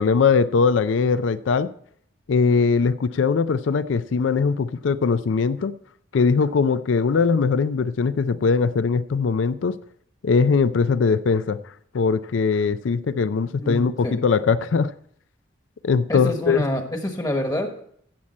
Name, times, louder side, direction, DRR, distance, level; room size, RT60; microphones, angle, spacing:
voice 1, 0.0-1.7 2.3-5.7 6.1-9.8 10.2-11.6 11.9-14.9 15.8-16.7, left 5 dB, 85° left, 14 dB, 0.4 m, -21 dB
voice 2, 13.6-14.1 16.1-17.8, left 1 dB, 20° left, 5 dB, 1.2 m, -27 dB
15.0 x 7.4 x 4.2 m, 0.64 s
head